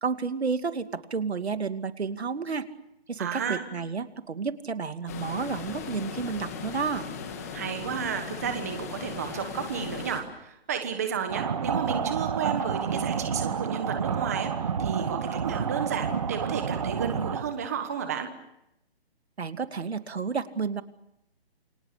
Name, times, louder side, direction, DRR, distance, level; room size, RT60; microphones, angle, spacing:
voice 1, 0.0-2.7 3.1-7.1 19.4-20.8, right 5 dB, 80° right, 9 dB, 2.6 m, -31 dB
voice 2, 3.2-3.6 7.5-14.5 14.8-18.3, right 7 dB, 15° right, 6 dB, 1.2 m, -32 dB
sound 1, 5.1-10.2, left 6 dB, 15° left, 1.8 m, -38 dB
sound 2, 11.3-17.4, right 6 dB, 35° right, 1.7 m, -29 dB
29.0 x 25.0 x 6.8 m, 0.83 s
hypercardioid pair, 180°, 32 cm